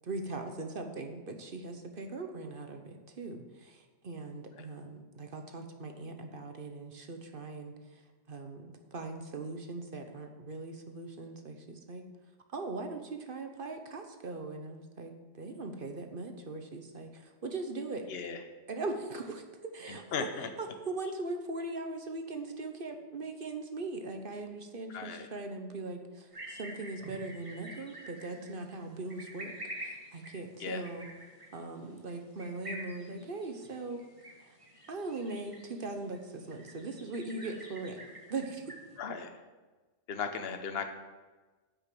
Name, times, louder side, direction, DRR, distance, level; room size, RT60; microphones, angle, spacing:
voice 1, 0.0-12.0 12.5-18.1 18.7-31.1 31.5-34.0 34.4-34.6 34.9-38.7, right 3 dB, 45° right, 5 dB, 1.0 m, -40 dB
voice 2, 19.9-20.5 24.9-25.2 30.6-30.8 39.0-39.3 40.1-40.9, left 6 dB, 55° left, 7 dB, 1.1 m, -36 dB
sound 1, 26.3-39.0, right 1 dB, 25° right, 1.5 m, -48 dB
8.5 x 6.1 x 7.7 m, 1.3 s
omnidirectional pair, 1.3 m